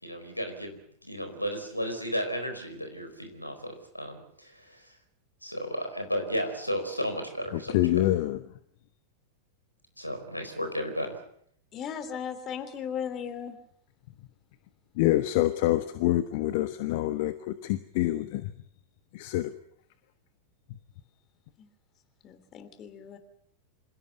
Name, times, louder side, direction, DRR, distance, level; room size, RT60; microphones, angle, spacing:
voice 1, 0.0-4.8 5.4-8.1 10.0-11.2, equal, 90° left, 7 dB, 4.6 m, -34 dB
voice 2, 7.5-8.4 15.0-18.5 19.1-19.5, left 15 dB, 50° left, 11 dB, 1.2 m, -26 dB
voice 3, 11.7-13.6 21.6-21.7 22.2-23.2, left 8 dB, 30° left, 11 dB, 3.1 m, -37 dB
27.0 x 16.5 x 8.1 m, 0.67 s
figure-of-eight pair, 90°, 0 cm